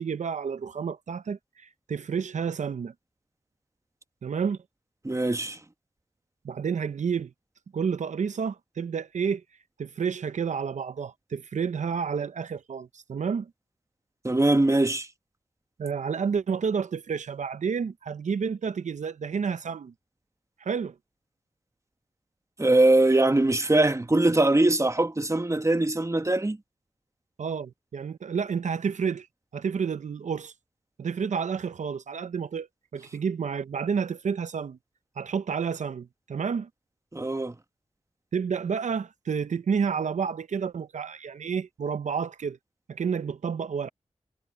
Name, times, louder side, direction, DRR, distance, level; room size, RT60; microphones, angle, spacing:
voice 1, 0.0-2.9 4.2-4.6 6.4-7.3 7.7-9.4 9.8-13.5 15.8-19.9 20.6-20.9 27.4-29.3 29.5-30.5 31.0-34.8 35.2-36.7 38.3-42.6 42.9-43.9, right 6 dB, 80° right, 0.6 m, -30 dB
voice 2, 5.0-5.6 14.2-15.1 22.6-26.6 37.1-37.5, right 2 dB, 25° right, 1.3 m, -22 dB
cardioid pair, 45°, 12 cm